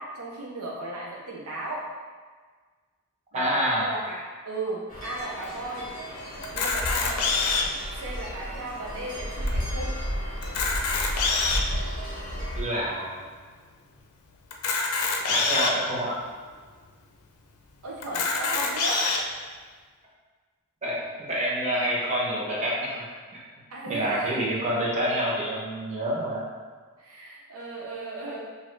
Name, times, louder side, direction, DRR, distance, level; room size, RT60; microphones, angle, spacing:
voice 1, 0.0-1.9 3.3-5.9 6.5-7.2 8.0-9.9 17.8-19.1 23.7-24.3 27.0-28.4, right 2 dB, 70° right, -4 dB, 0.7 m, -35 dB
voice 2, 3.3-3.9 12.5-13.2 15.3-16.2 20.8-23.0 23.9-26.5, equal, 30° right, -6 dB, 1.0 m, -27 dB
sound 1, 4.9-12.6, equal, 40° left, 1.3 m, -33 dB
Camera, 6.4-7.8 8.5-8.6 8.8-8.9 9.5-9.6 10.4-11.7 12.4-12.5 14.5-15.7 16.5-16.6 16.8-16.9 18.0-19.2, left 4 dB, 80° left, 0.6 m, -25 dB
6.1 x 2.7 x 3.1 m, 1.5 s
head